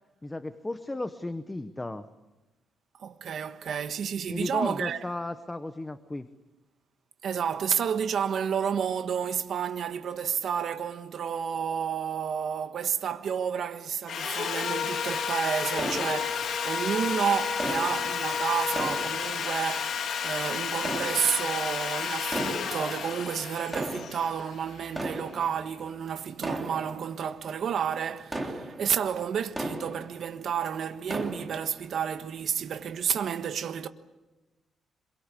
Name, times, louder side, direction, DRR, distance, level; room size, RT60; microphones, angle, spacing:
voice 1, 0.2-2.1 4.3-6.3, left 2 dB, 10° left, 0.9 m, -34 dB
voice 2, 3.0-5.0 7.2-33.9, right 8 dB, 55° right, 1.3 m, -31 dB
Sawing, 14.1-25.1, left 6 dB, 55° left, 2.5 m, -31 dB
sound 1, 15.8-16.8 17.6-19.9 20.7-21.8 22.2-23.1 23.5-30.5 30.8-31.9 32.4-32.5 33.1-33.2, right 1 dB, 10° right, 3.1 m, -37 dB
26.0 x 23.0 x 8.4 m
cardioid pair, 150°, 0 cm